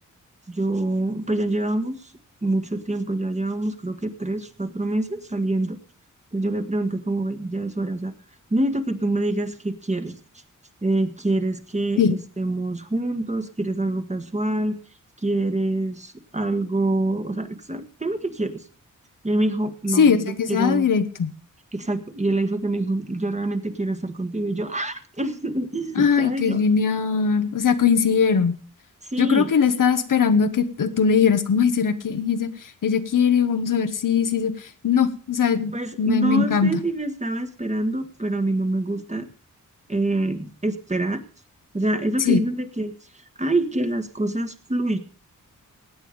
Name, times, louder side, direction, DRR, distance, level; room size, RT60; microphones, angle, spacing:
voice 1, 0.5-2.1 2.4-5.8 6.3-8.1 8.5-10.2 10.8-14.8 15.2-18.6 19.2-20.9 21.7-26.6 29.0-29.5 35.7-39.3 39.9-41.2 41.7-45.0, right 2 dB, 20° right, 9 dB, 1.6 m, -26 dB
voice 2, 20.0-21.3 26.0-28.6 29.2-32.5 32.8-34.5 34.8-36.7 42.3-42.4, left 6 dB, 80° left, 10 dB, 1.2 m, -20 dB
16.5 x 9.2 x 5.3 m, 0.39 s
wide cardioid pair, 80°, 32 cm